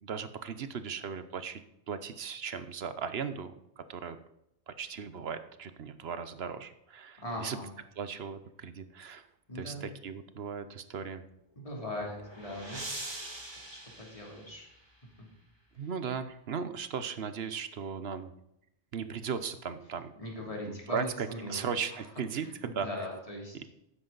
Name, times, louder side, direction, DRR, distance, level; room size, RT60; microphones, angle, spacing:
voice 1, 0.0-1.6 1.9-4.2 4.7-7.6 8.0-9.3 9.5-11.2 15.8-18.3 18.9-20.1 20.7-22.9 23.5-23.7, right 6 dB, 65° right, 11 dB, 1.0 m, -37 dB
voice 2, 7.2-7.7 9.5-9.9 11.6-12.8 13.7-14.7 20.2-22.0 22.4-23.7, left 1 dB, 30° left, -2 dB, 3.1 m, -40 dB
sound 1, 11.7-15.0, right 1 dB, 25° right, 1.8 m, -43 dB
13.0 x 9.8 x 4.0 m, 0.82 s
omnidirectional pair, 1.1 m